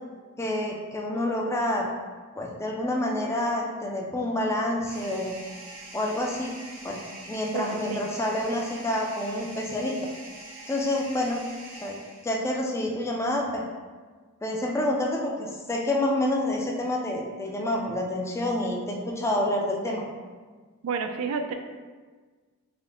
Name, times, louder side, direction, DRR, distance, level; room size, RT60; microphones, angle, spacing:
voice 1, 0.4-1.9 2.4-5.4 5.9-6.5 6.8-7.0 7.3-10.0 10.7-11.4 11.8-12.0 12.2-13.6 14.4-20.0, left 1 dB, 10° left, -1 dB, 0.3 m, -28 dB
sound 1, 4.9-12.6, right 2 dB, 40° right, 0.6 m, -44 dB
voice 2, 7.5-8.0 20.8-21.5, right 5 dB, 80° right, 6 dB, 0.3 m, -30 dB
3.7 x 2.1 x 3.3 m, 1.4 s
head